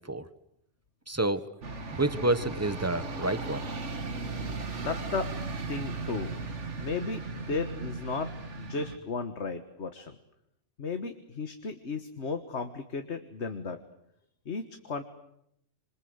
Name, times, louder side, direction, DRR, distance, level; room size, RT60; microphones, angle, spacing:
voice 1, 1.1-1.4 2.0-3.6, right 2 dB, 15° right, 13 dB, 1.2 m, -28 dB
sound 1, 1.6-9.0, right 3 dB, 75° right, 2.2 m, -37 dB
voice 2, 4.7-5.3 5.7-6.3 6.8-8.3 8.6-10.1 10.8-13.8 14.5-15.0, left 4 dB, 65° left, 8 dB, 1.8 m, -34 dB
28.0 x 26.5 x 8.0 m, 0.77 s
omnidirectional pair, 1.2 m